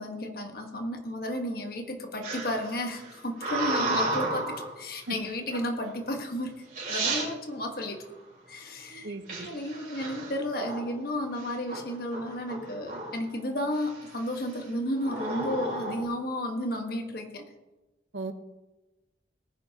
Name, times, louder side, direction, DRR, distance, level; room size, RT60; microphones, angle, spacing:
voice 1, 0.0-8.1 8.5-17.4, left 1 dB, 55° left, 4 dB, 1.4 m, -33 dB
sound 1, 2.2-4.7 5.5-5.9 6.5-6.6 6.7-7.3 9.3-10.9 11.4-11.8 12.1-13.3 13.8-14.2 15.0-16.0, right 2 dB, 50° right, 4.3 m, -32 dB
voice 2, 9.0-9.5 18.1-18.3, right 2 dB, 90° right, 8 dB, 1.0 m, -35 dB
19.0 x 10.0 x 2.9 m, 1.1 s
head